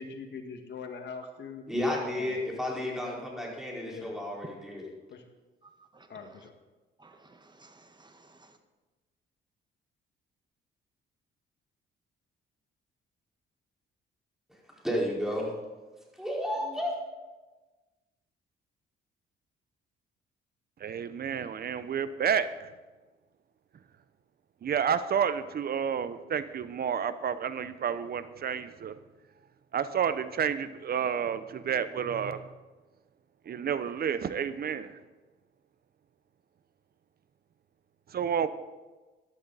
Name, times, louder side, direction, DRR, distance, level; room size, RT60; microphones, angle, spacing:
voice 1, 0.0-1.7 2.0-2.4 3.8-4.2 5.1-5.3 6.1-6.5, left 5 dB, 60° left, 4 dB, 1.9 m, -42 dB
voice 2, 1.7-4.8 14.8-15.5 16.2-16.9, left 1 dB, ahead, -3 dB, 4.7 m, -32 dB
voice 3, 5.6-6.2 7.0-8.6, right 3 dB, 20° right, 7 dB, 1.5 m, -57 dB
voice 4, 20.8-22.7 24.6-28.9 29.7-32.5 33.5-35.0 38.1-38.5, right 7 dB, 50° right, 13 dB, 0.8 m, -30 dB
14.5 x 11.5 x 4.1 m, 1.2 s
cardioid pair, 90°, 20 cm